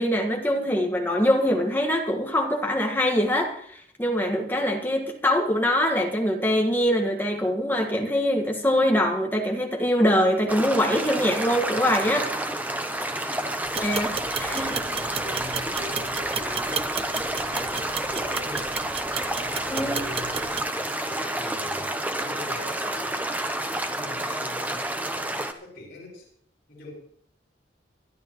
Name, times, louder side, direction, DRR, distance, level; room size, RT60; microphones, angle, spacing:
voice 1, 0.0-12.3 13.7-14.1 14.4-14.7 19.7-20.0, equal, 10° left, 2 dB, 1.6 m, -23 dB
sound 1, 10.5-25.5, right 1 dB, 10° right, 0.8 m, -29 dB
sound 2, 13.6-20.7, right 6 dB, 30° right, 0.5 m, -34 dB
voice 2, 14.1-17.0 17.3-18.8 19.2-23.3 23.8-26.3 26.7-26.9, left 2 dB, 55° left, -5 dB, 6.3 m, -43 dB
23.5 x 11.5 x 3.1 m, 0.64 s
head